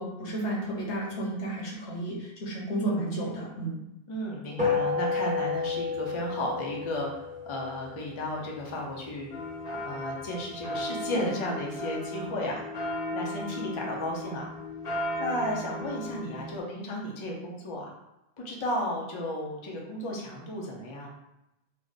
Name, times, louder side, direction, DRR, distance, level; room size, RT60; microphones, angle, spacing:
voice 1, 0.0-3.8, right 1 dB, 85° left, -3 dB, 1.3 m, -32 dB
voice 2, 4.1-9.3 9.8-12.6 13.1-14.5 15.2-17.9 18.4-21.1, left 1 dB, 35° left, -1 dB, 0.6 m, -33 dB
sound 1, 4.6-9.2, left 5 dB, 10° right, 1.1 m, -31 dB
sound 2, 9.3-16.6, left 1 dB, 60° left, 1.0 m, -36 dB
3.2 x 2.2 x 3.9 m, 0.88 s
omnidirectional pair, 1.1 m